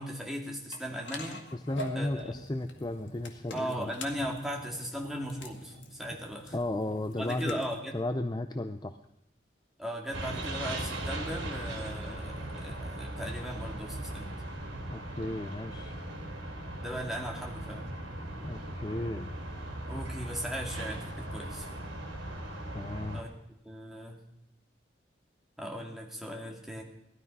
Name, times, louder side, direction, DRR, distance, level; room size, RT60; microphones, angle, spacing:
voice 1, 0.0-1.4 1.9-2.3 3.5-6.6 7.2-8.0 9.8-14.3 16.8-17.8 19.9-21.7 23.1-23.3 23.6-24.2 25.6-26.8, equal, ahead, 0 dB, 2.4 m, -38 dB
sound 1, 0.7-7.8, left 1 dB, 75° left, 2.0 m, -45 dB
voice 2, 1.5-3.9 6.5-7.6 7.9-9.0 14.9-16.0 18.4-19.3 22.7-23.2, left 1 dB, 20° left, 8 dB, 0.6 m, -34 dB
sound 2, 10.1-23.2, right 1 dB, 85° right, 3.9 m, -38 dB
18.5 x 13.0 x 5.5 m, 0.80 s
head